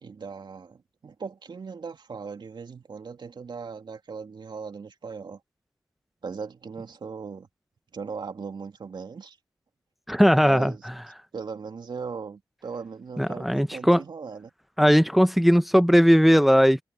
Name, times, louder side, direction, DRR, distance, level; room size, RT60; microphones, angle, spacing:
voice 1, 0.0-5.4 6.2-7.5 7.9-9.4 10.3-10.9 11.3-14.5, right 5 dB, 60° right, 2.8 m, -38 dB
voice 2, 10.1-10.7 13.2-14.0 14.8-16.8, equal, ahead, 1.0 m, -18 dB
supercardioid pair, 40°, 9 cm